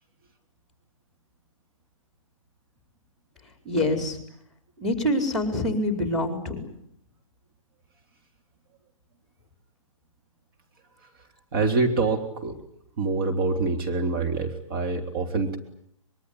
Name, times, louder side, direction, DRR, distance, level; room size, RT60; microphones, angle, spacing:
voice 1, 3.6-4.2 4.8-6.6, left 1 dB, ahead, 6 dB, 4.8 m, -25 dB
voice 2, 11.5-12.6 13.0-15.6, right 3 dB, 45° right, 3 dB, 3.6 m, -25 dB
24.5 x 22.5 x 9.9 m, 0.70 s
hypercardioid pair, 135°, 17 cm